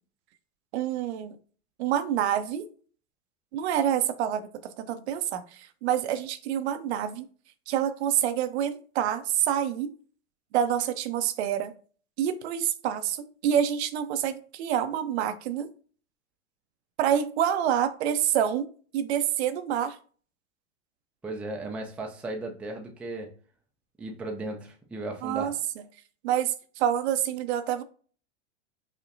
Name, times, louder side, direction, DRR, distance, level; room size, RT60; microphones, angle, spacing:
voice 1, 0.7-1.4 1.8-2.7 3.5-7.3 7.7-9.9 10.5-11.7 12.2-15.7 17.0-18.6 18.9-20.0 25.2-25.5 26.2-27.8, right 10 dB, 60° right, 12 dB, 0.5 m, -27 dB
voice 2, 21.2-23.3 24.0-25.6, right 2 dB, 5° right, 1 dB, 0.4 m, -36 dB
4.9 x 2.1 x 2.6 m, 0.42 s
hypercardioid pair, 95°, 38 cm